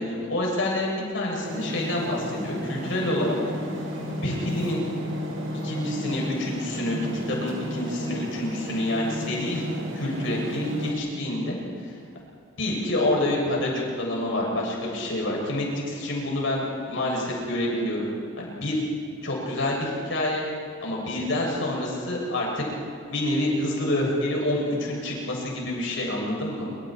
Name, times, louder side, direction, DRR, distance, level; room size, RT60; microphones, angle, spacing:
voice 1, 0.0-3.4 4.2-4.8 5.6-9.6 9.9-11.6 11.9-12.0 12.6-18.1 18.4-18.8 19.2-20.5 20.8-22.6 23.1-26.7, left 1 dB, 70° left, -2 dB, 7.5 m, -27 dB
sound 1, 1.4-10.9, equal, 85° right, 6.0 m, -33 dB
27.0 x 26.0 x 4.6 m, 2.4 s
head